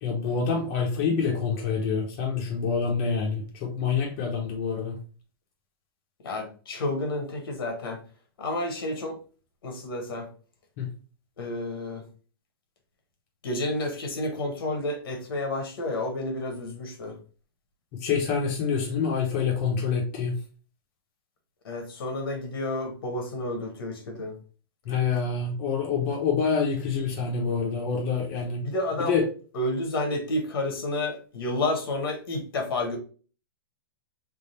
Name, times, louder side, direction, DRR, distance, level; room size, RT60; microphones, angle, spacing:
voice 1, 0.0-5.0 10.8-10.9 18.0-20.4 24.8-28.6 29.0-29.2, left 5 dB, 35° left, -1 dB, 0.9 m, -26 dB
voice 2, 6.2-8.0 8.4-9.2 9.6-10.3 11.4-12.0 13.4-17.2 21.6-24.3 28.6-29.2 29.5-33.0, left 2 dB, 70° left, 4 dB, 1.3 m, -30 dB
3.6 x 2.3 x 4.2 m, 0.39 s
hypercardioid pair, 155°, 12 cm